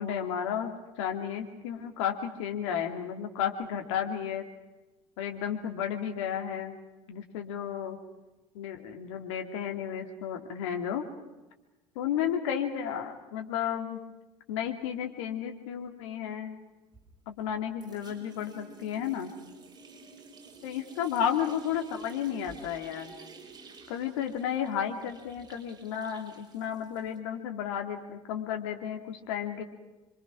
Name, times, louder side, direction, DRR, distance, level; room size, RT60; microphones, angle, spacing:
voice 1, 0.0-4.4 5.2-6.8 7.1-8.0 8.5-11.0 11.9-14.0 14.5-16.6 17.3-19.3 20.6-23.1 23.9-29.6, left 9 dB, 70° left, 4 dB, 2.8 m, -33 dB
sound 1, 16.9-17.6 17.8-27.2, right 3 dB, 25° right, 5.7 m, -51 dB
27.5 x 24.5 x 6.2 m, 1.1 s
figure-of-eight pair, 65°, 16 cm